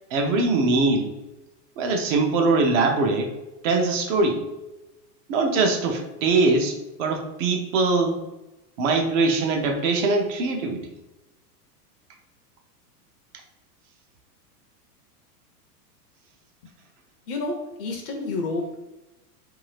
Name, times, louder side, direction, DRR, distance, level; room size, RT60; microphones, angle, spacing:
voice 1, 0.1-1.1 1.8-3.3 3.6-4.4 5.3-8.2 8.8-10.8, right 3 dB, 50° right, 3 dB, 0.6 m, -22 dB
voice 2, 17.3-18.8, left 3 dB, 40° left, 2 dB, 0.4 m, -30 dB
2.7 x 2.3 x 3.2 m, 1.0 s
supercardioid pair, 140°, 48 cm